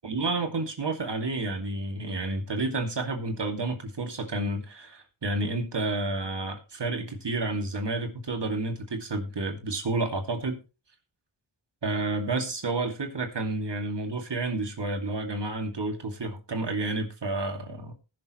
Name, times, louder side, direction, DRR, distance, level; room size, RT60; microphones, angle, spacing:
voice 1, 0.0-10.6 11.8-17.9, right 2 dB, 60° right, 4 dB, 2.5 m, -30 dB
19.5 x 6.8 x 3.1 m, 0.31 s
wide cardioid pair, 65°, 47 cm